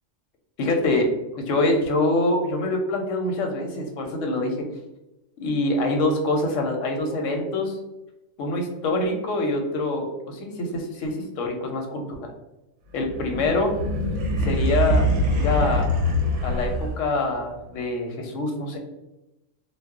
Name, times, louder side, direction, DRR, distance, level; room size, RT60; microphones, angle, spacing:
voice 1, 0.6-4.7 5.4-7.8 8.4-12.3 12.9-13.7 14.4-16.0 16.4-18.8, left 2 dB, 85° left, 3 dB, 1.0 m, -25 dB
sound 1, 13.0-17.2, equal, 70° right, 0.9 m, -24 dB
2.3 x 2.1 x 3.5 m, 0.96 s
omnidirectional pair, 1.3 m